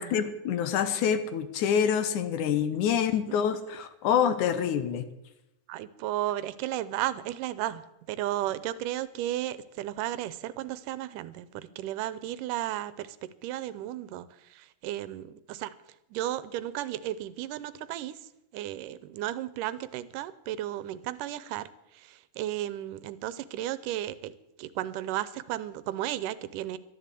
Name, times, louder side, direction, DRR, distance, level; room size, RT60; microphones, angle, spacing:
voice 1, 0.0-5.0, left 8 dB, 75° left, 11 dB, 2.4 m, -26 dB
voice 2, 5.7-7.8 8.1-15.7 16.1-18.2 18.5-21.7 21.9-24.3 24.6-26.8, right 13 dB, 85° right, 16 dB, 2.3 m, -34 dB
12.5 x 11.0 x 8.3 m, 0.89 s
omnidirectional pair, 3.7 m